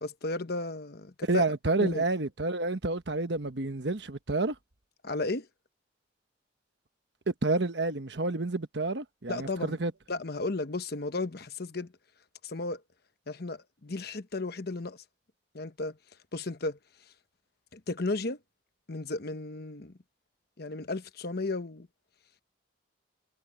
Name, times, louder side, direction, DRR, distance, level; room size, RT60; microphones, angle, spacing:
voice 1, 0.0-1.4 1.8-2.0 5.0-5.5 9.3-9.8 10.1-11.9 12.4-12.8 13.3-15.0 15.5-16.0 16.3-16.8 17.7-18.4 18.9-19.9 20.6-21.9, left 3 dB, 55° left, 1.0 m, -34 dB
voice 2, 1.2-4.5 7.3-9.9, right 2 dB, 65° right, 1.2 m, -29 dB
head